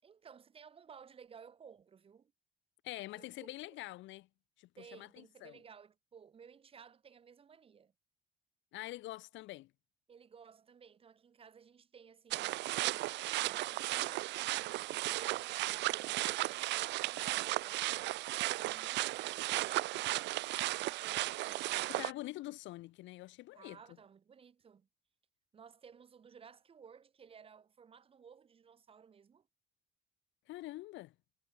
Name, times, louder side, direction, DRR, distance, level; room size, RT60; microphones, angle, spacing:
voice 1, 0.0-2.3 3.2-3.8 4.8-7.9 10.1-17.9 18.6-19.8 21.0-22.3 23.5-24.9 25.5-29.5, right 7 dB, 30° right, 6.9 m, -57 dB
voice 2, 2.8-4.3 4.6-5.6 8.7-9.7 21.9-23.8 30.5-31.1, left 17 dB, 75° left, 0.9 m, -45 dB
sound 1, 12.3-22.1, right 18 dB, 65° right, 0.4 m, -35 dB
cardioid pair, 175°, 20 cm